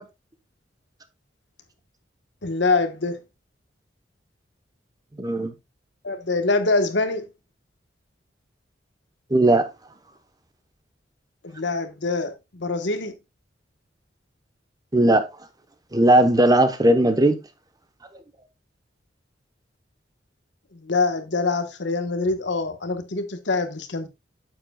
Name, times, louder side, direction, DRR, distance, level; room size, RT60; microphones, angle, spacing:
voice 1, 2.4-3.2 6.0-7.3 11.4-13.1 20.7-24.1, left 3 dB, 70° left, 1.2 m, -24 dB
voice 2, 5.2-5.5 9.3-9.7 14.9-15.2 15.9-17.4, right 1 dB, 20° right, 1.0 m, -17 dB
9.0 x 7.7 x 2.3 m
head